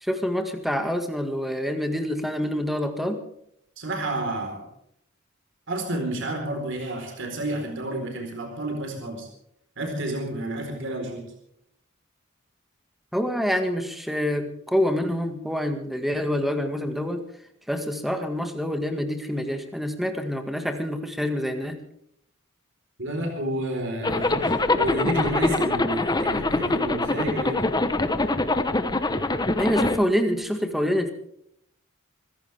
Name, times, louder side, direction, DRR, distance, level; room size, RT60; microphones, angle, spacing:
voice 1, 0.0-3.2 13.1-17.2 17.7-21.8 29.6-31.1, equal, ahead, 6 dB, 1.8 m, -26 dB
voice 2, 3.8-4.7 5.7-9.3 9.8-11.2 23.0-27.7, right 1 dB, 60° right, 3 dB, 4.4 m, -30 dB
Zipper (clothing), 24.0-30.0, left 2 dB, 20° left, 1.0 m, -24 dB
25.0 x 15.5 x 3.5 m, 0.71 s
head